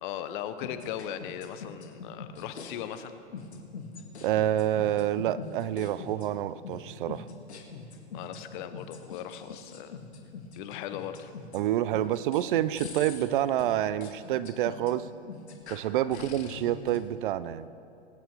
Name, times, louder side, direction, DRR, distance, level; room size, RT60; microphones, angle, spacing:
voice 1, 0.0-3.1 8.1-10.0 10.6-11.3 16.1-16.3, left 10 dB, 45° left, 10 dB, 1.1 m, -38 dB
sound 1, 0.6-2.7 3.3-17.0, left 5 dB, 75° left, 2.1 m, -43 dB
voice 2, 4.2-7.2 11.5-15.1 15.7-17.7, right 12 dB, 50° right, 16 dB, 0.6 m, -28 dB
22.0 x 9.2 x 4.6 m, 2.6 s
hypercardioid pair, 110°, 33 cm